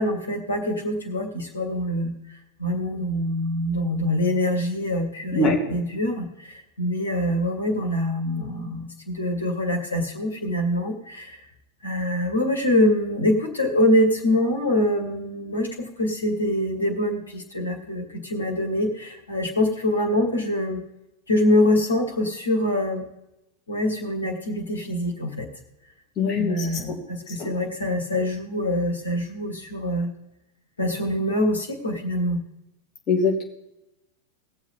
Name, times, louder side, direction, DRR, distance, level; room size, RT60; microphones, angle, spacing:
voice 1, 0.0-11.4 11.8-20.8 21.3-23.0 23.7-25.5 26.3-30.1 30.8-32.4, left 1 dB, 75° left, 5 dB, 2.0 m, -24 dB
voice 2, 26.2-27.0 27.4-27.5 33.1-33.4, left 4 dB, 30° left, 0 dB, 2.5 m, -23 dB
19.0 x 7.2 x 3.8 m, 0.90 s
figure-of-eight pair, 90°, 0 cm